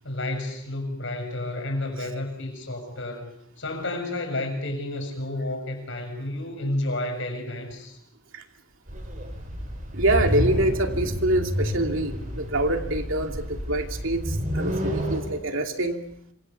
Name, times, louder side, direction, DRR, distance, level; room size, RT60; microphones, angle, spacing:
voice 1, 0.0-8.0, left 1 dB, 60° left, 5 dB, 7.2 m, -31 dB
sound 1, 8.9-15.2, equal, 40° right, 7.5 m, -29 dB
voice 2, 9.9-16.0, right 1 dB, 65° right, 4 dB, 2.7 m, -25 dB
27.0 x 25.0 x 7.0 m, 0.74 s
head